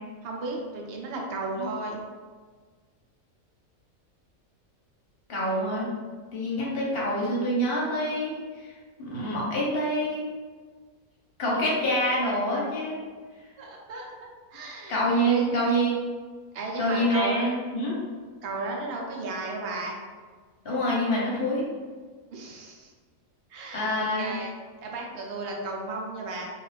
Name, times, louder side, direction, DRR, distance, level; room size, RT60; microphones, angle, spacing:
voice 1, 0.2-2.0 13.6-15.6 16.5-17.5 18.4-19.9 22.3-22.9 23.5-23.9 24.2-24.5 24.8-26.5, right 2 dB, 65° right, -1 dB, 0.6 m, -34 dB
voice 2, 5.3-5.9 6.3-8.7 9.0-10.2 11.4-13.0 14.9-16.0 16.8-18.0 20.6-21.6 23.7-24.3, equal, 50° left, -5 dB, 0.9 m, -26 dB
2.4 x 2.3 x 3.2 m, 1.5 s
omnidirectional pair, 1.5 m